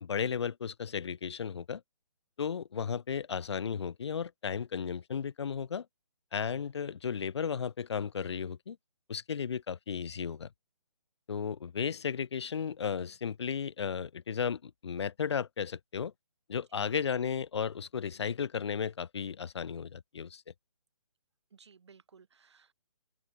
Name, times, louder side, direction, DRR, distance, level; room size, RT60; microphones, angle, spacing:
voice 1, 0.0-1.8 2.4-5.9 6.3-8.8 9.1-10.5 11.3-16.1 16.5-20.4, left 7 dB, 50° left, 0.4 m, -34 dB
voice 2, 21.5-22.7, right 6 dB, 50° right, 4.2 m, -59 dB
open air
hypercardioid pair, 175°, 18 cm